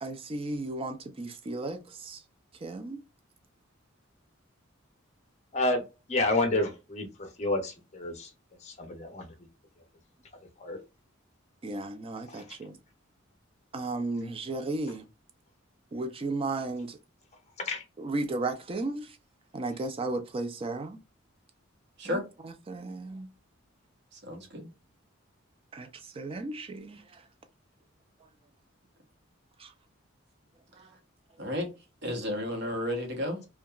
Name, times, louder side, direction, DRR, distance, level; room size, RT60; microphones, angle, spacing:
voice 1, 0.0-2.2 2.6-3.0 11.6-12.8 13.7-15.0 15.9-17.0 18.0-19.1 19.5-21.0 22.1-22.2 22.4-23.3 25.7-25.9 26.2-27.0 29.6-29.7, right 2 dB, 25° right, 0.4 m, -34 dB
voice 2, 6.1-7.1 7.4-8.3 8.8-9.3 10.6-10.8 12.3-12.4 17.7-17.8, left 2 dB, 35° left, 0.6 m, -29 dB
voice 3, 24.1-24.7 31.4-31.7 32.0-33.4, left 1 dB, 60° right, 0.9 m, -32 dB
2.7 x 2.2 x 2.3 m
head